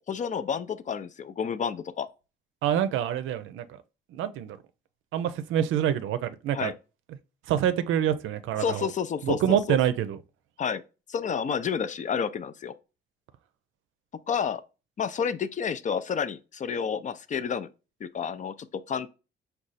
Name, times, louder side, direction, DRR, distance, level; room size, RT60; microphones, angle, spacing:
voice 1, 0.1-2.1 6.5-6.7 8.6-9.8 10.6-10.8 11.1-12.7 14.3-14.6 15.0-17.7 18.0-18.5 18.9-19.1, left 7 dB, 40° left, 0.4 m, -30 dB
voice 2, 2.6-3.7 4.1-4.6 5.1-6.7 7.5-8.9 9.2-10.2, right 10 dB, 85° right, 0.5 m, -26 dB
4.9 x 2.3 x 4.0 m
cardioid pair, 90°, 20 cm